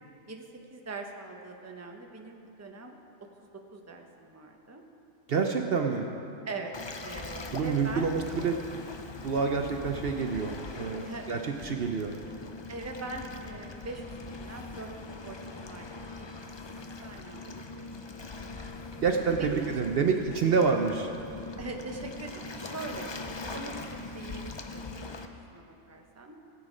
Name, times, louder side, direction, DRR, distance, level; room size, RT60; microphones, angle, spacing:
voice 1, 0.3-3.0 3.7-4.8 6.4-6.7 7.0-8.1 8.4-8.6 11.0-11.3 12.7-14.9 15.2-16.3 16.7-17.9 19.2-20.0 21.6-23.2 23.4-23.8 24.1-24.4 24.7-26.4, right 3 dB, 15° right, 2 dB, 0.8 m, -42 dB
voice 2, 5.3-6.1 7.5-8.6 9.2-12.1 19.0-21.1, right 5 dB, 60° right, 3 dB, 0.8 m, -28 dB
Waves surf, 6.7-25.3, left 3 dB, 35° left, 0.5 m, -41 dB
17.0 x 8.8 x 5.0 m, 2.7 s
omnidirectional pair, 1.2 m